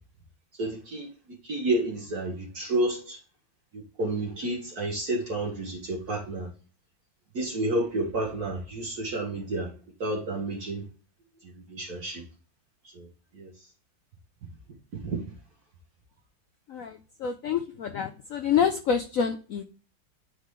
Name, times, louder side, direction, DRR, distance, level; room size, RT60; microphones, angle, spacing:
voice 1, 0.6-1.1 1.4-3.2 3.7-6.5 7.3-9.7 10.0-10.9 11.4-12.2 12.9-13.1 13.3-13.5 15.0-15.2, right 1 dB, 55° right, -2 dB, 1.8 m, -30 dB
voice 2, 17.2-19.6, left 7 dB, 75° left, 7 dB, 0.7 m, -27 dB
10.0 x 3.8 x 3.2 m, 0.36 s
omnidirectional pair, 2.1 m